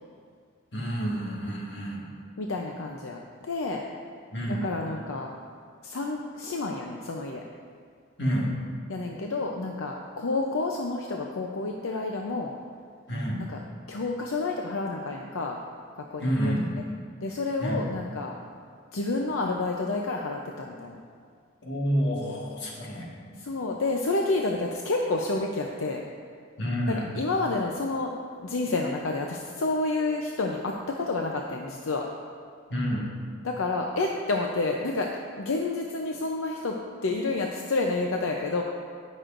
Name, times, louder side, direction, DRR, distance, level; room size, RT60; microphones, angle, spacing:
voice 1, 0.7-2.0 4.3-4.6 8.2-8.5 13.1-13.4 16.2-16.7 17.6-17.8 21.6-23.3 26.6-27.1 32.7-33.1, equal, 55° left, -4 dB, 1.7 m, -28 dB
voice 2, 2.4-3.8 4.5-5.3 5.8-7.4 8.9-12.5 13.4-13.6 13.9-15.6 16.1-16.5 17.2-18.3 18.9-21.0 23.4-26.0 27.1-28.1 28.4-32.1 33.4-36.8 37.0-38.6, left 3 dB, 80° left, 1 dB, 0.6 m, -29 dB
18.0 x 6.3 x 2.5 m, 2.1 s
head